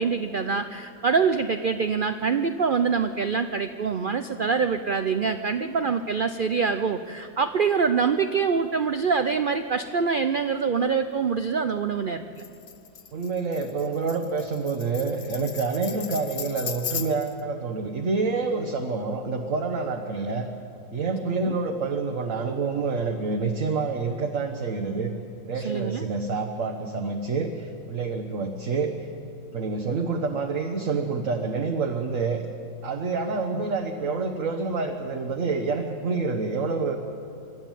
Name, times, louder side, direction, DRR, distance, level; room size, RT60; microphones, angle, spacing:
voice 1, 0.0-12.4 21.2-21.6 25.6-26.0, right 5 dB, 75° right, 9 dB, 0.4 m, -25 dB
Tambourine, 12.4-17.4, left 7 dB, 45° left, 0.7 m, -37 dB
voice 2, 13.1-20.5 20.9-25.1 25.4-29.1 29.5-32.4 32.8-37.0, right 4 dB, 55° right, 3 dB, 1.4 m, -27 dB
26.0 x 12.0 x 9.2 m, 2.6 s
omnidirectional pair, 1.8 m